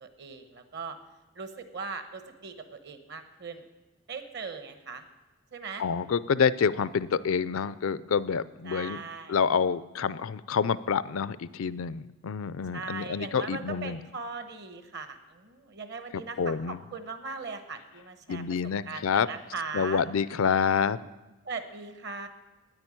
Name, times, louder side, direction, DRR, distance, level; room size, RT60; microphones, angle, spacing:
voice 1, 0.0-1.0 1.4-3.6 4.1-5.0 5.5-5.8 8.7-9.4 12.7-18.4 18.9-20.0 21.4-22.3, right 4 dB, 50° right, 9 dB, 1.1 m, -39 dB
voice 2, 5.8-9.0 9.3-14.0 16.1-16.8 18.3-19.3 19.7-21.0, left 6 dB, 65° left, 17 dB, 0.4 m, -27 dB
9.7 x 8.9 x 9.8 m, 1.1 s
head